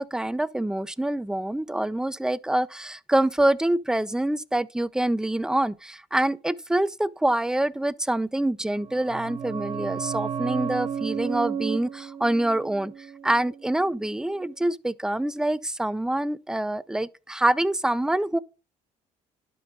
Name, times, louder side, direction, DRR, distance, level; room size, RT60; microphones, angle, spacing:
voice 1, 0.0-12.9 13.2-18.4, right 1 dB, 5° right, 0.4 m, -26 dB
sound 1, 8.7-14.1 14.4-14.5, right 7 dB, 35° right, 0.7 m, -33 dB
12.0 x 5.3 x 2.4 m
supercardioid pair, 65°, 17 cm